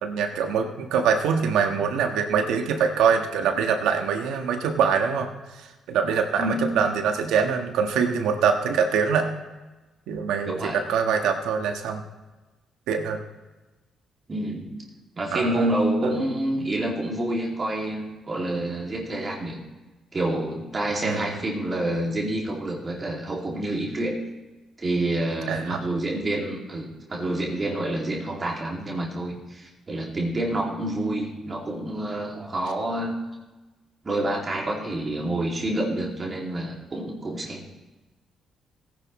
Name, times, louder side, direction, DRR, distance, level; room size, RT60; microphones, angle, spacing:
voice 1, 0.0-5.3 5.5-9.3 10.1-12.0 12.9-13.2 15.3-15.7 16.0-16.1 21.0-21.4 25.5-25.8, right 6 dB, 90° right, 4 dB, 1.4 m, -24 dB
voice 2, 10.5-10.8 14.3-14.7 15.2-19.6 20.1-24.2 24.8-33.2 34.0-37.7, right 1 dB, 30° right, -2 dB, 2.5 m, -28 dB
17.5 x 10.0 x 3.2 m, 1.1 s
cardioid pair, 90°, 0 cm